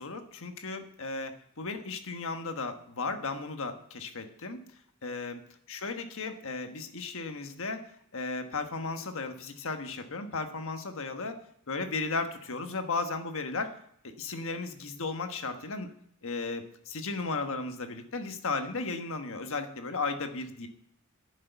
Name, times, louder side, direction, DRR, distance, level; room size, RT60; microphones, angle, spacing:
voice 1, 0.0-4.7 5.0-5.4 5.7-11.4 11.7-13.7 14.0-15.9 16.2-20.7, left 3 dB, 65° left, 6 dB, 1.3 m, -35 dB
11.0 x 6.7 x 8.0 m, 0.70 s
head